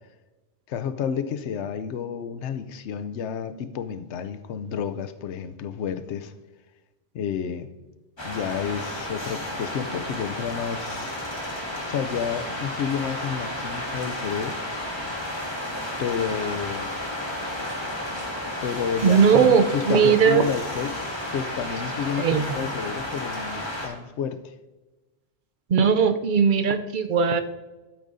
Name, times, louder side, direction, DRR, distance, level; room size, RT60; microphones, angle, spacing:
voice 1, 0.7-6.3 7.1-7.7 8.2-11.2 11.9-14.6 16.0-16.9 18.6-21.0 21.3-24.5, left 7 dB, 85° left, 11 dB, 0.9 m, -30 dB
sound 1, 8.2-23.9, left 1 dB, 25° left, 1.7 m, -32 dB
voice 2, 19.0-20.4 22.2-22.4 25.7-27.4, right 6 dB, 55° right, 9 dB, 0.7 m, -19 dB
12.5 x 8.5 x 2.6 m, 1.1 s
omnidirectional pair, 1.1 m